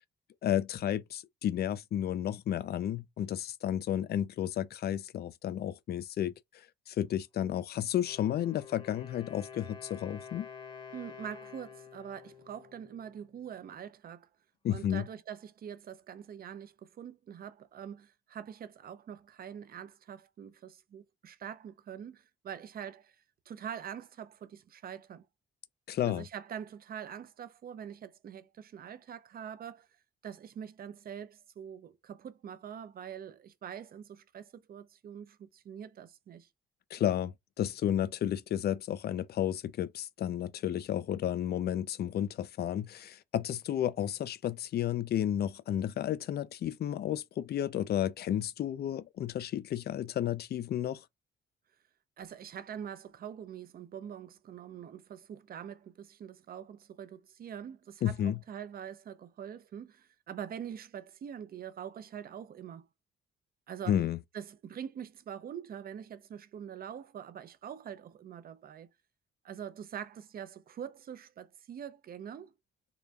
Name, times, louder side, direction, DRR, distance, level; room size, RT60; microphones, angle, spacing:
voice 1, 0.4-6.3 6.9-10.5 14.6-15.1 25.9-26.2 36.9-51.0 58.0-58.4 63.9-64.2, left 11 dB, 55° left, 0.4 m, -32 dB
Wind instrument woodwind instrument, 7.9-13.7, left 6 dB, 25° left, 0.9 m, -49 dB
voice 2, 10.9-14.3 14.7-23.2 23.5-25.3 26.0-29.9 30.2-36.5 52.2-62.9 63.7-64.0 64.3-68.9 69.4-72.5, right 8 dB, 50° right, 0.6 m, -44 dB
3.8 x 2.2 x 3.3 m
cardioid pair, 90°, 20 cm